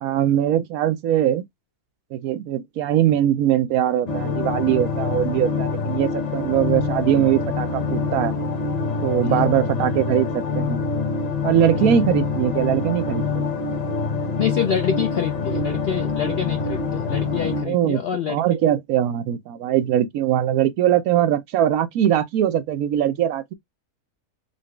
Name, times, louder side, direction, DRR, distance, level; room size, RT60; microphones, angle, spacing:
voice 1, 0.0-1.4 2.1-8.3 9.0-10.8 11.4-13.5 17.6-18.0 18.3-23.5, right 11 dB, 75° right, 1.0 m, -21 dB
sound 1, 4.1-17.6, left 4 dB, 40° left, 0.7 m, -25 dB
voice 2, 11.7-12.1 14.4-18.4, left 8 dB, 75° left, 0.5 m, -26 dB
3.9 x 2.3 x 3.2 m
omnidirectional pair, 1.6 m